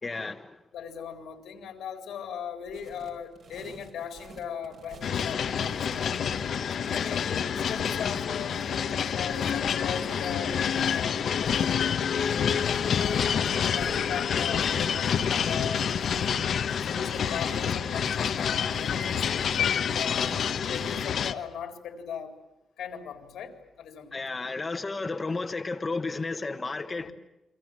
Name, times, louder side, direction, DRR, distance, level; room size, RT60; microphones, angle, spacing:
voice 1, 0.0-0.6 24.1-27.1, left 3 dB, 25° left, 1.3 m, -32 dB
voice 2, 0.7-6.2 6.8-12.6 13.0-16.4 16.8-19.5 19.9-22.4 22.8-24.5 27.0-27.1, left 7 dB, 90° left, 4.1 m, -39 dB
sound 1, 2.7-21.1, right 4 dB, 65° right, 4.6 m, -49 dB
sound 2, 5.0-21.3, left 7 dB, 65° left, 1.1 m, -28 dB
29.5 x 23.0 x 7.6 m
cardioid pair, 130°, 0 cm